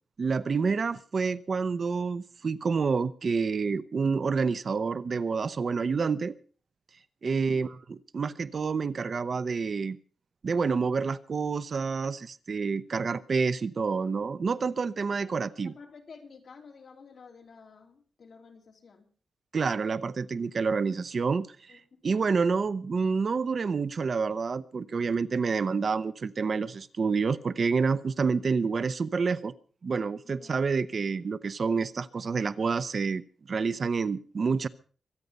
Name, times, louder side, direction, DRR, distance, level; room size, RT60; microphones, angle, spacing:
voice 1, 0.2-6.3 7.2-10.0 10.4-15.7 19.5-21.5 22.0-29.5 29.8-33.2 33.5-34.7, right 5 dB, 45° right, 15 dB, 0.6 m, -28 dB
voice 2, 7.2-7.7 14.6-14.9 15.2-15.3 15.6-19.1 21.7-21.8 30.2-30.6, left 5 dB, 55° left, 3 dB, 3.4 m, -51 dB
24.0 x 9.3 x 5.3 m, 0.42 s
wide cardioid pair, 145°, 0 cm